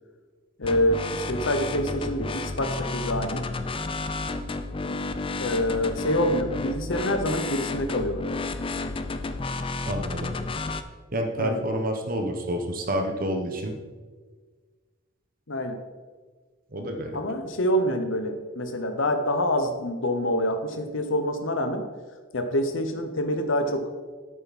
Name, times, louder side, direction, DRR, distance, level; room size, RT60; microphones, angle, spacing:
voice 1, 0.6-3.5 5.4-8.3 11.4-11.6 15.5-15.8 17.1-21.9 22.3-23.9, equal, 65° left, 7 dB, 0.9 m, -26 dB
sound 1, 0.6-10.8, left 3 dB, 25° left, 0.5 m, -31 dB
voice 2, 9.9-10.3 11.1-13.8 16.7-17.2, equal, 45° right, 4 dB, 1.1 m, -28 dB
10.5 x 8.7 x 4.2 m, 1.4 s
head